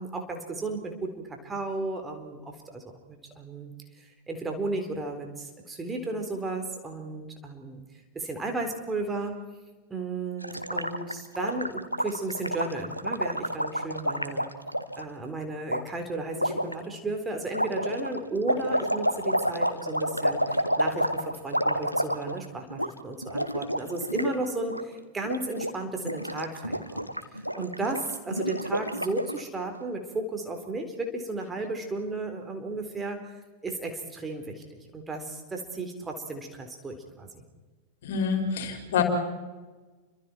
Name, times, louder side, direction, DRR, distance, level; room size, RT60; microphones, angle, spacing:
voice 1, 0.0-7.8 8.1-9.4 9.9-14.5 15.0-33.2 33.6-37.4, right 2 dB, 15° right, 4 dB, 4.1 m, -34 dB
Gurgling, 10.4-15.0 15.7-15.8 16.4-16.7 17.5-22.5 22.7-22.9 23.2-24.4 24.6-24.8 25.2-25.7 26.0-29.4, equal, 90° left, 1.3 m, -29 dB
voice 2, 38.0-39.0, left 7 dB, 55° left, 3 dB, 5.4 m, -27 dB
29.5 x 25.5 x 4.6 m, 1.3 s
figure-of-eight pair, 90°, 0 cm